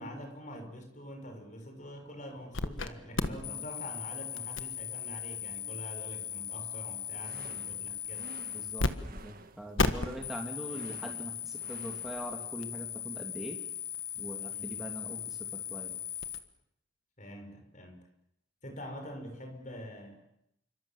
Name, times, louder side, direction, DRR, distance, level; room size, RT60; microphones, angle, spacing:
voice 1, 0.0-8.3 14.5-14.8 17.2-18.1 18.6-20.2, equal, 35° left, 5 dB, 5.7 m, -45 dB
sound 1, 2.5-2.9 3.2-8.9 9.2-9.3 9.8-16.4, left 5 dB, 70° left, 1.5 m, -36 dB
voice 2, 3.2-3.6 8.5-13.6 14.1-16.0, equal, 5° right, 0 dB, 2.9 m, -42 dB
sound 2, 7.0-12.3, right 2 dB, 45° right, 1.7 m, -52 dB
28.0 x 25.0 x 7.4 m, 0.79 s
head